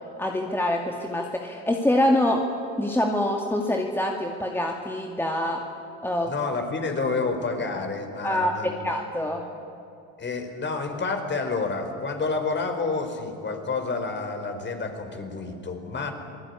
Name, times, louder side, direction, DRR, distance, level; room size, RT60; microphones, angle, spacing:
voice 1, 0.2-2.4 2.8-5.6 6.0-6.3 8.2-9.4, left 1 dB, 5° left, 1 dB, 2.3 m, -25 dB
voice 2, 6.3-8.9 10.2-16.1, left 4 dB, 30° left, 5 dB, 4.9 m, -29 dB
26.5 x 18.5 x 9.9 m, 2.6 s
supercardioid pair, 85°, 34 cm